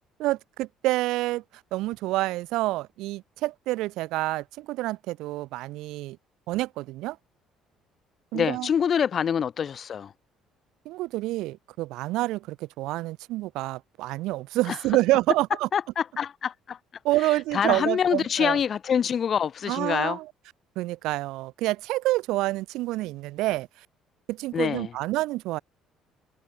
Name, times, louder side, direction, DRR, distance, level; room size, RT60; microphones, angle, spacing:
voice 1, 0.2-1.4 1.7-6.2 6.5-7.2 8.3-8.7 10.9-15.7 17.0-18.6 19.7-20.3 20.8-23.9 24.3-25.6, right 18 dB, 80° right, 1.7 m, -28 dB
voice 2, 8.3-10.1 14.7-14.8 15.7-16.8 17.5-20.2 24.5-24.9, left 7 dB, 40° left, 0.9 m, -25 dB
cardioid pair, 120°, 0 cm